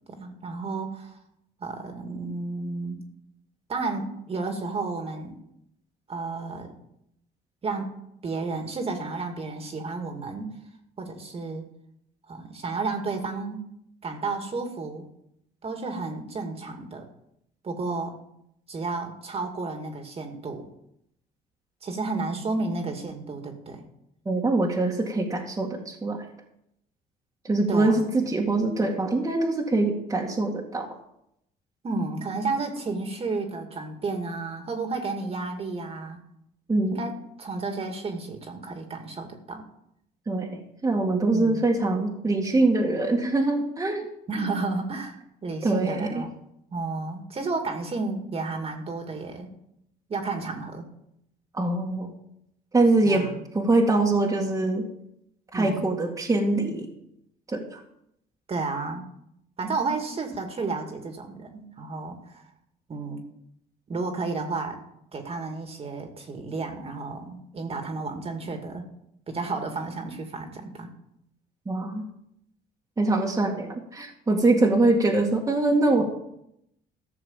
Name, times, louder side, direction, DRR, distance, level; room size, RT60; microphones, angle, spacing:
voice 1, 0.1-1.2 1.6-3.0 3.7-5.4 6.1-6.7 7.6-8.0 8.2-10.5 11.0-11.6 12.3-13.6 14.0-15.0 15.6-17.1 17.6-18.2 18.7-20.7 21.8-23.8 27.7-28.1 31.8-36.2 36.9-39.6 41.3-41.6 44.3-45.2 45.4-46.3 46.7-49.5 50.1-50.9 53.0-53.4 55.5-55.9 58.5-59.1 59.6-62.4 62.9-63.2 63.9-64.8 65.1-68.9 69.3-70.9, right 3 dB, 35° right, 4 dB, 2.4 m, -32 dB
voice 2, 24.3-26.3 27.4-30.9 36.7-37.0 40.3-44.0 45.6-46.2 51.5-52.1 52.7-54.9 55.5-56.9 57.5-57.8 71.7-72.0 73.0-76.0, right 2 dB, 20° right, -1 dB, 2.1 m, -23 dB
14.5 x 6.7 x 7.4 m, 0.77 s
cardioid pair, 110°, 17 cm